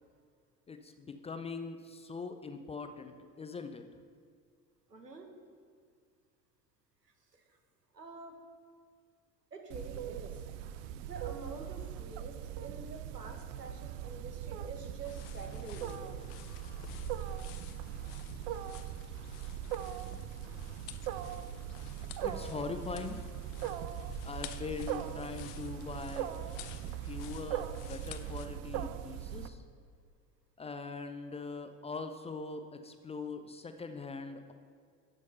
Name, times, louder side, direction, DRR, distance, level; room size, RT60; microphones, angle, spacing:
voice 1, 0.7-3.8 22.2-23.2 24.2-26.3 27.0-29.6 30.6-34.5, left 4 dB, 15° left, 8 dB, 0.5 m, -41 dB
voice 2, 4.9-5.3 7.3-7.4 7.9-8.4 9.5-10.4 11.0-16.2, right 4 dB, 90° right, 4 dB, 1.3 m, -47 dB
Wild animals, 9.7-29.5, right 10 dB, 50° right, 0.7 m, -40 dB
Bird vocalization bird call bird song, 14.6-24.8, left 3 dB, 30° left, 1.3 m, -55 dB
sound 1, 15.0-28.5, left 12 dB, 50° left, 0.8 m, -52 dB
12.0 x 6.4 x 5.5 m, 2.2 s
figure-of-eight pair, 70°, 47 cm